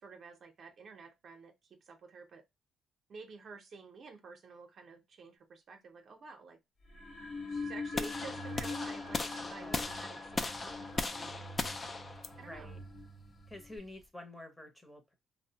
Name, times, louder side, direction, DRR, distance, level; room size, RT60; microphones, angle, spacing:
voice 1, 0.0-2.4 3.1-6.6 7.5-11.7 12.4-12.8, right 4 dB, 55° right, 0.6 m, -51 dB
sound 1, 6.9-13.8, left 3 dB, 60° left, 0.9 m, -43 dB
sound 2, 7.9-14.0, left 3 dB, 30° left, 0.3 m, -38 dB
voice 2, 9.4-9.9 12.4-12.8 13.5-15.1, left 1 dB, 10° left, 0.7 m, -49 dB
2.5 x 2.0 x 2.7 m
cardioid pair, 90°, 0 cm